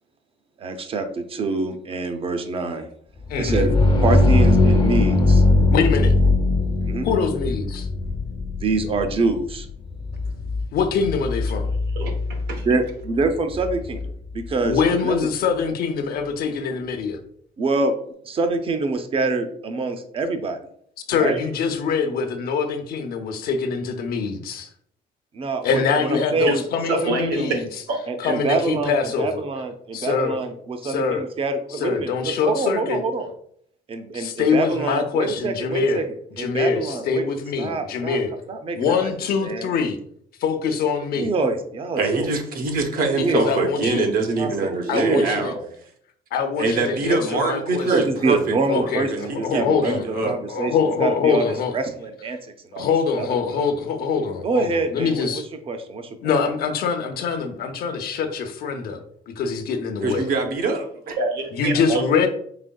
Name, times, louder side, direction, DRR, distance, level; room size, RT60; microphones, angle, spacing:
voice 1, 0.6-2.9 3.4-5.4 6.9-7.1 8.6-9.7 12.6-14.0 14.3-15.2 17.6-17.9 18.2-20.6 21.2-21.4 25.3-26.6 26.9-27.5 28.1-33.3 33.9-36.1 36.4-37.3 37.6-38.2 38.5-39.1 39.4-39.7 41.2-42.3 43.2-43.4 44.4-45.7 47.9-50.7 51.0-51.4 51.7-52.4 52.6-52.9 53.2-53.6 54.4-56.1, right 3 dB, 35° right, 8 dB, 0.6 m, -25 dB
sound 1, 3.2-14.9, left 2 dB, 25° left, 0.7 m, -21 dB
voice 2, 3.3-3.7 5.7-6.1 7.0-7.9 10.7-11.7 14.6-17.2 21.1-24.7 25.6-27.6 28.2-29.4 29.9-30.4 30.8-31.2 31.7-33.0 34.1-36.0 36.4-38.3 38.7-40.0 40.4-41.3 43.2-44.1 44.9-45.5 46.3-47.9 48.7-51.7 52.8-55.5 56.2-60.3 61.5-62.3, left 5 dB, 65° left, 6 dB, 0.7 m, -24 dB
voice 3, 11.9-12.7 26.5-26.6 27.1-27.2 27.5-28.0 61.2-62.0, right 3 dB, 85° right, 3 dB, 0.9 m, -26 dB
voice 4, 42.0-45.5 46.6-50.3 60.0-61.2, right 3 dB, 60° right, 4 dB, 0.9 m, -24 dB
4.9 x 3.5 x 2.3 m, 0.64 s
cardioid pair, 110°, 17 cm